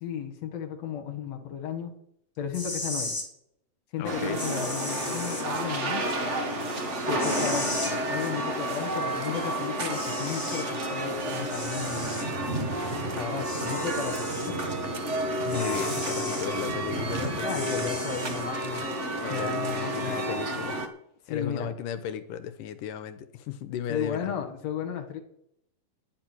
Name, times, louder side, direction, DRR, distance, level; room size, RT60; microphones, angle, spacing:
voice 1, 0.0-1.9 2.4-3.1 3.9-6.3 7.1-12.1 13.2-14.6 17.4-18.8 19.3-20.2 21.3-21.7 23.9-25.2, left 8 dB, 55° left, 5 dB, 2.4 m, -34 dB
sound 1, 2.4-3.3 4.4-5.4 7.2-7.9 9.4-9.5 9.9-10.7 11.5-12.3 13.4-14.5 15.5-16.5 17.5-18.4, left 2 dB, 10° left, 1.5 m, -36 dB
voice 2, 4.0-4.5 15.4-18.1 19.2-20.9 21.3-24.3, left 9 dB, 75° left, 11 dB, 2.3 m, -35 dB
sound 2, 4.0-20.9, right 1 dB, 85° right, 0.6 m, -30 dB
11.0 x 10.0 x 6.1 m, 0.74 s
omnidirectional pair, 4.1 m